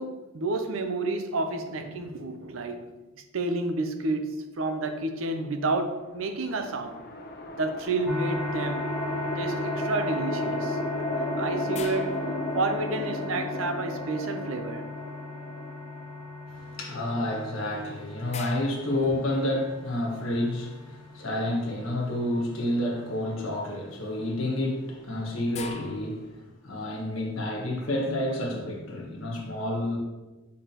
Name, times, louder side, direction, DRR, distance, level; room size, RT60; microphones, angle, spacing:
voice 1, 0.0-3.0 3.3-7.0 7.6-9.0 9.4-10.8 11.4-14.9, right 2 dB, 75° right, 0.6 m, -30 dB
sound 1, 6.2-16.6, left 1 dB, 50° left, 0.8 m, -34 dB
sound 2, 8.1-25.8, left 2 dB, 5° right, 1.3 m, -38 dB
sound 3, 11.7-13.3 17.5-17.6 18.3-19.9 22.6-22.9 23.4-23.8 24.7-26.6, left 5 dB, 30° left, 0.4 m, -45 dB
voice 2, 16.5-26.3 26.6-30.0, left 1 dB, 75° left, 1.4 m, -29 dB
7.0 x 4.7 x 3.0 m
head